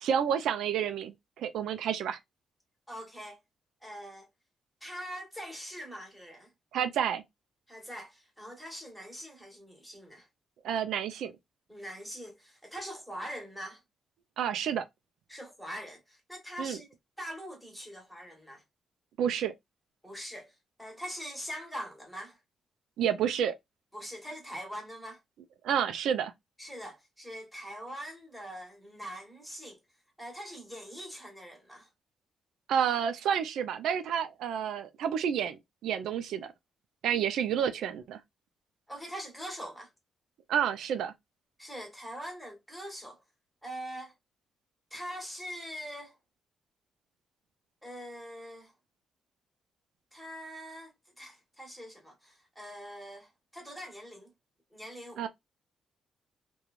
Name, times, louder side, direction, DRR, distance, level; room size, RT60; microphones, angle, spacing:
voice 1, 0.0-2.2 6.7-7.2 10.6-11.3 14.4-14.9 16.6-16.8 19.2-19.5 23.0-23.5 25.6-26.3 32.7-36.5 37.0-38.2 40.5-41.1 55.2-55.3, right 8 dB, 85° right, 0.4 m, -29 dB
voice 2, 2.9-3.4 3.8-4.3 4.8-6.5 7.7-10.3 11.7-13.8 15.3-16.9 17.2-18.6 20.0-22.4 23.9-25.2 26.6-29.8 30.2-31.9 38.9-39.9 41.6-43.2 43.6-44.1 44.9-46.2 47.8-48.7 50.1-54.3 54.7-55.3, equal, ahead, 1.2 m, -43 dB
3.1 x 2.2 x 2.3 m
cardioid pair, 145°, 0 cm